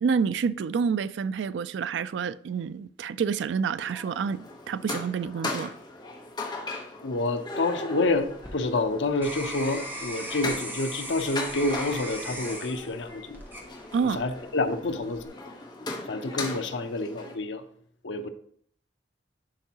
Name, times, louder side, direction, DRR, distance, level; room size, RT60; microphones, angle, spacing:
voice 1, 0.0-5.7 13.9-14.2, right 6 dB, 70° right, 0.3 m, -28 dB
sound 1, 3.8-17.4, left 2 dB, 25° left, 1.1 m, -38 dB
voice 2, 7.0-13.4 14.1-15.3 16.1-17.6 18.0-18.3, left 2 dB, 75° left, 0.7 m, -28 dB
sound 2, 8.1-14.3 14.8-15.3, equal, 10° right, 1.3 m, -38 dB
11.0 x 4.5 x 2.9 m
head